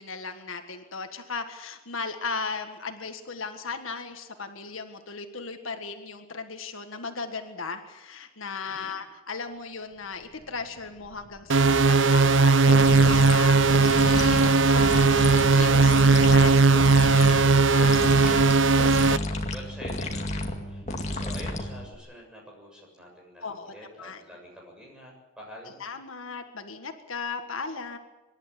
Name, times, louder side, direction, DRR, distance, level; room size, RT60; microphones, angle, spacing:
voice 1, 0.0-18.0 23.4-24.2 25.8-28.0, left 4 dB, 80° left, 6 dB, 1.7 m, -37 dB
voice 2, 8.7-9.1 18.2-20.8 21.1-25.8, equal, 5° right, -1 dB, 7.2 m, -46 dB
sound 1, 9.6-9.7 9.9-16.5, right 1 dB, 80° right, 1.9 m, -48 dB
sound 2, 11.5-19.2, right 3 dB, 65° right, 0.6 m, -18 dB
sound 3, 12.7-22.0, left 1 dB, 35° left, 2.2 m, -32 dB
25.5 x 11.5 x 9.8 m, 1.1 s
head